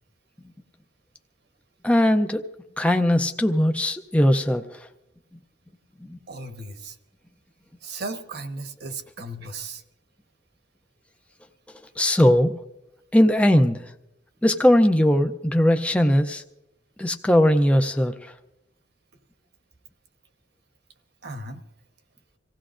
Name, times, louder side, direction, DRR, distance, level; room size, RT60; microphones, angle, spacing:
voice 1, 1.8-2.5 2.8-4.8 6.1-6.2 12.0-12.6 13.1-13.9 14.4-16.4 17.0-18.3, left 1 dB, 5° left, 0.5 m, -19 dB
voice 2, 6.3-7.0 7.8-9.8 21.2-21.6, right 2 dB, 60° right, 1.1 m, -36 dB
26.5 x 16.5 x 2.5 m
head